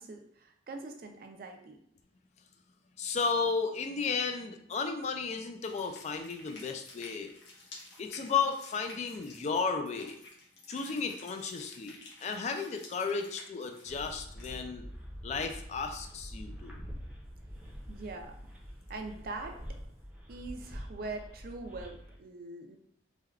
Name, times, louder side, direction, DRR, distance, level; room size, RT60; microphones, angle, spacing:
voice 1, 0.0-1.8 17.9-18.4 18.9-19.6 20.3-22.8, right 3 dB, 55° right, 4 dB, 0.4 m, -42 dB
voice 2, 3.0-7.3 8.0-10.2 10.7-14.8 15.2-16.8, left 5 dB, 40° left, 5 dB, 0.3 m, -34 dB
sound 1, 5.5-14.5, left 2 dB, 80° left, 0.9 m, -52 dB
sound 2, 13.9-22.2, equal, 5° right, 0.6 m, -45 dB
3.3 x 2.2 x 2.3 m, 0.70 s
head